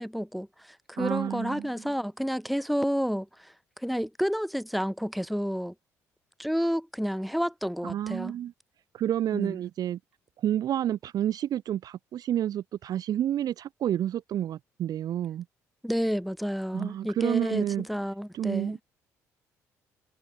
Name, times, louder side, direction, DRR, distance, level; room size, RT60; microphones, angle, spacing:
voice 1, 0.0-5.7 6.4-8.3 9.3-9.6 15.8-18.8, equal, ahead, 1.8 m, -30 dB
voice 2, 1.0-1.7 7.8-8.5 8.9-10.0 10.4-15.5 16.7-17.9 18.3-18.8, right 11 dB, 55° right, 0.6 m, -29 dB
hypercardioid pair, 50°, 8 cm